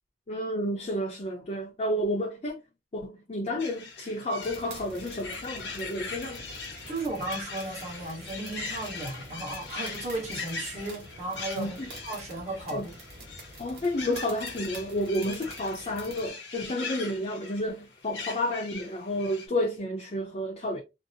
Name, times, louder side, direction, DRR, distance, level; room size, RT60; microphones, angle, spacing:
voice 1, 0.3-2.6 2.9-6.5 11.6-11.9 12.7-12.9 13.6-20.8, left 1 dB, 40° left, 0.6 m, -31 dB
sound 1, 3.6-19.5, left 4 dB, 75° left, 0.8 m, -41 dB
sound 2, 4.4-16.3, right 1 dB, 65° right, 1.2 m, -47 dB
voice 2, 6.8-11.8 12.0-13.0, right 2 dB, 40° right, 1.1 m, -35 dB
2.7 x 2.0 x 2.7 m
head